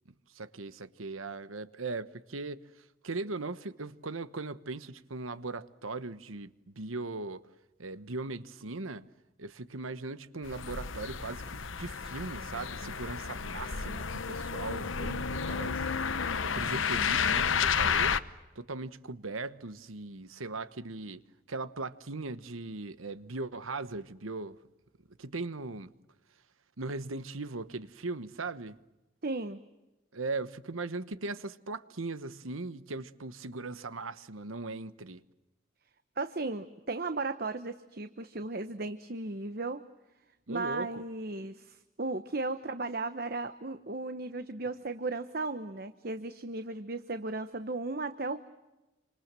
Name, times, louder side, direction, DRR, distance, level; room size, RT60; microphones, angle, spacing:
voice 1, 0.3-2.7 3.0-7.5 7.8-9.0 9.4-16.1 16.4-18.2 18.5-21.2 21.5-24.6 25.2-25.9 26.8-28.8 30.1-35.2 40.5-41.0, right 3 dB, 85° right, 1.2 m, -39 dB
sound 1, 10.4-18.2, left 6 dB, 75° left, 1.0 m, -31 dB
voice 2, 29.2-29.6 36.2-39.8 40.5-48.4, right 3 dB, 50° right, 1.0 m, -35 dB
27.5 x 26.0 x 7.5 m
head